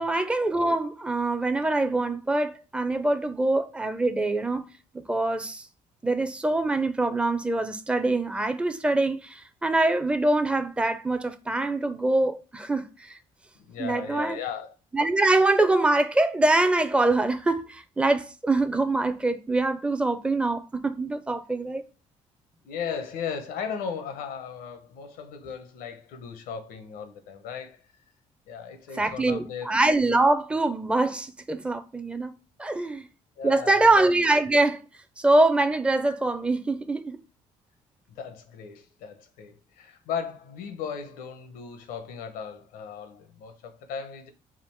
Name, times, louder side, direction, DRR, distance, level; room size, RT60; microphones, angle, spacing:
voice 1, 0.0-4.6 4.9-5.6 6.0-13.2 13.8-14.4 14.9-21.8 29.0-32.3 32.6-33.1 33.4-34.8 35.2-37.2, right 2 dB, 5° right, 0.5 m, -24 dB
voice 2, 13.6-14.8 22.6-27.8 28.5-29.8 32.7-33.0 33.4-33.9 38.2-44.3, left 6 dB, 85° left, 0.8 m, -36 dB
3.6 x 2.4 x 4.4 m
cardioid pair, 90°, 15 cm